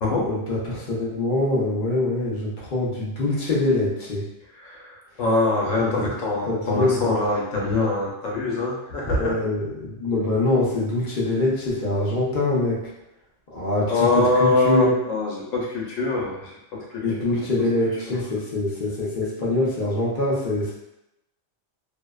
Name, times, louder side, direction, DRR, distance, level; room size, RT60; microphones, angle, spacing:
voice 1, 0.2-4.3 5.8-6.1 6.5-7.1 9.2-12.8 13.5-14.9 17.0-20.7, left 2 dB, 50° left, -6 dB, 0.7 m, -24 dB
voice 2, 4.5-9.4 13.9-17.4 18.1-18.2, left 2 dB, 90° left, -2 dB, 1.1 m, -24 dB
2.7 x 2.0 x 2.3 m, 0.88 s
omnidirectional pair, 1.3 m